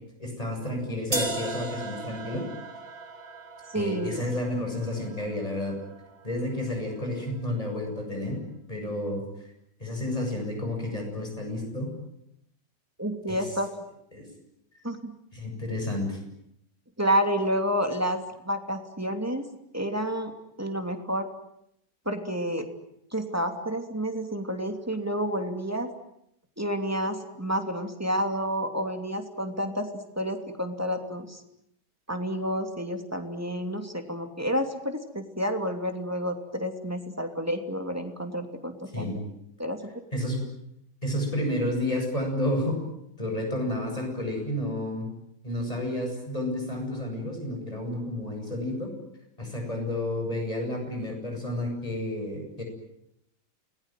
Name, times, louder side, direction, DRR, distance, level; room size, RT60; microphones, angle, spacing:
voice 1, 0.2-2.4 3.7-5.8 6.2-8.4 8.7-9.2 9.8-11.9 13.3-13.5 14.1-14.3 15.3-16.2 38.9-39.2 40.1-40.4 41.0-42.8 43.2-45.1 45.4-48.9 49.4-52.6, left 1 dB, 20° left, 2 dB, 8.2 m, -31 dB
sound 1, 1.1-7.1, right 2 dB, 30° right, 3.1 m, -37 dB
voice 2, 3.7-4.2 13.0-13.7 14.8-15.1 17.0-19.5 19.7-20.3 20.6-21.3 22.0-22.7 23.1-25.9 26.6-29.9 30.1-31.4 32.1-39.1 39.6-39.9, equal, 10° right, 5 dB, 2.8 m, -29 dB
29.0 x 20.5 x 9.3 m, 0.78 s
omnidirectional pair, 1.9 m